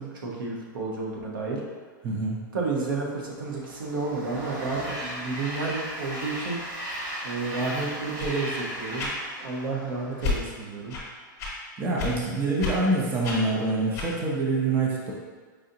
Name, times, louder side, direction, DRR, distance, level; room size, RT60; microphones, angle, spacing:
voice 1, 0.0-1.6 2.5-6.6 7.2-9.1 9.4-10.9, right 3 dB, 85° right, -2 dB, 0.9 m, -31 dB
voice 2, 2.0-2.4 11.8-15.1, right 2 dB, 20° right, -3 dB, 0.5 m, -25 dB
Train, 3.1-10.6, right 1 dB, 65° right, 1.5 m, -37 dB
sound 1, 8.2-8.4 9.0-9.2 10.2-10.4 10.9-11.1 11.4-11.5 12.0-12.1 12.6-12.7 13.2-13.4 13.9-14.1, left 3 dB, 30° left, 1.0 m, -30 dB
4.9 x 2.6 x 2.7 m, 1.5 s
hypercardioid pair, 150°, 11 cm